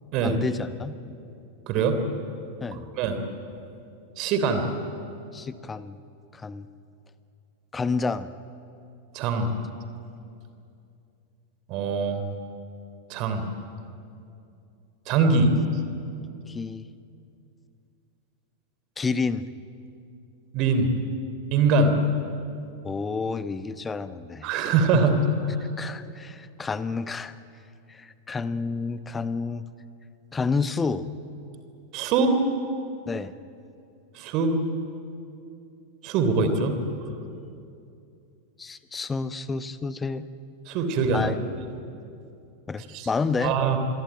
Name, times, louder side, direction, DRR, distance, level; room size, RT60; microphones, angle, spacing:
voice 1, 0.2-1.0 2.6-2.8 5.3-6.0 6.3-6.7 7.7-8.3 16.5-16.9 19.0-19.4 22.8-24.5 25.8-27.3 27.9-29.7 30.3-31.1 33.1-33.3 38.6-40.3 41.1-41.4 42.7-43.6, left 4 dB, 15° left, 14 dB, 1.0 m, -29 dB
voice 2, 1.7-2.0 3.0-3.2 4.2-4.6 9.1-9.5 11.7-12.2 13.1-13.4 15.1-15.5 20.5-20.9 21.5-21.9 24.4-25.2 31.9-32.3 34.1-34.6 36.0-36.8 40.7-41.3 42.9-43.1 43.4-43.8, right 4 dB, 40° right, 8 dB, 3.3 m, -22 dB
26.0 x 22.0 x 9.0 m, 2.6 s
figure-of-eight pair, 90°, 0 cm